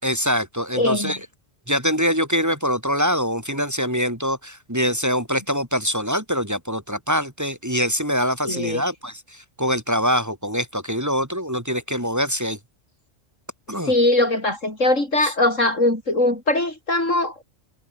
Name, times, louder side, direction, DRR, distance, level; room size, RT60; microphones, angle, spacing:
voice 1, 0.0-1.2 1.7-12.6 13.7-13.9 15.2-15.3, equal, 15° right, 4.5 m, -24 dB
voice 2, 0.7-1.2 8.5-8.8 13.9-17.4, left 2 dB, 85° left, 7.0 m, -21 dB
omnidirectional pair, 1.3 m